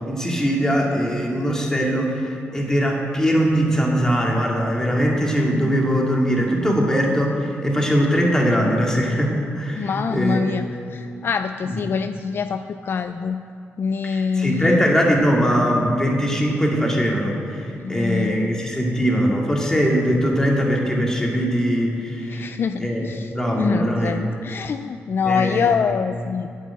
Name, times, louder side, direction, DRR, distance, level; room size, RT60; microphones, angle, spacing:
voice 1, 0.1-10.4 11.7-11.8 14.0-22.5 22.8-24.2 25.3-25.7, equal, 10° left, -1 dB, 2.2 m, -21 dB
voice 2, 9.8-13.4 13.8-14.8 17.8-18.5 22.3-23.3 23.6-26.5, left 6 dB, 55° left, 9 dB, 0.4 m, -25 dB
9.5 x 7.2 x 8.7 m, 2.6 s
cardioid pair, 95°, 5 cm